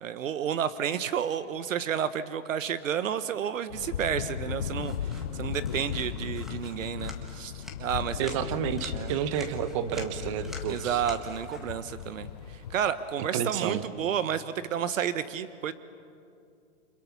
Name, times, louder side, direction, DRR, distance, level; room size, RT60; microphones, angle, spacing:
voice 1, 0.0-8.4 8.9-9.1 10.7-15.7, right 8 dB, 80° right, 13 dB, 1.2 m, -31 dB
sound 1, 3.7-12.9, left 9 dB, 35° left, 0.5 m, -37 dB
sound 2, 4.7-13.8, left 2 dB, ahead, 1.7 m, -49 dB
voice 2, 8.2-11.0 13.3-13.8, right 9 dB, 25° right, 12 dB, 0.9 m, -30 dB
29.0 x 26.5 x 6.0 m, 2.4 s
hypercardioid pair, 165°, 39 cm